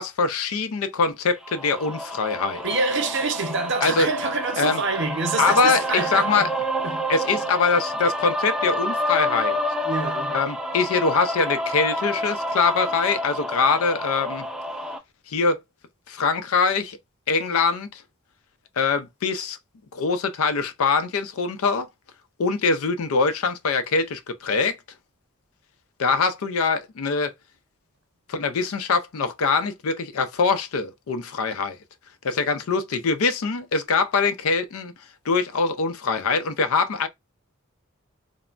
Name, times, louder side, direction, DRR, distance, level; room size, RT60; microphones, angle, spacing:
voice 1, 0.0-2.7 3.8-4.1 4.6-4.8 5.4-6.5 7.1-9.6 10.3-14.5 15.3-15.6 16.1-17.0 17.3-18.0 18.8-19.6 19.9-21.9 22.4-24.8 26.0-27.3 28.3-31.8 32.2-34.9 35.3-37.1, left 4 dB, 75° left, 0.4 m, -23 dB
sound 1, 1.4-15.0, equal, ahead, 0.3 m, -29 dB
voice 2, 2.6-6.5 6.8-7.0 7.3-7.4 9.8-10.4, right 4 dB, 55° right, 0.7 m, -26 dB
3.2 x 2.0 x 2.4 m
head